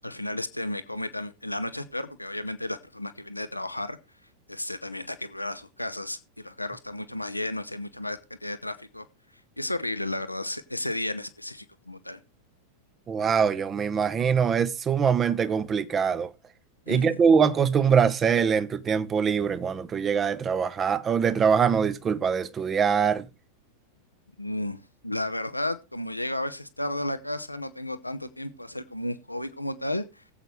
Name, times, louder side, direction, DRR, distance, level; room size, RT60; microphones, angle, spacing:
voice 1, 0.0-4.0 4.5-9.1 9.6-12.2 16.9-17.2 24.4-24.8 25.0-30.2, left 1 dB, 85° left, 0.7 m, -33 dB
voice 2, 13.1-16.3 16.9-23.3, right 6 dB, 25° right, 0.9 m, -23 dB
19.5 x 7.9 x 3.2 m
figure-of-eight pair, 90°, 0 cm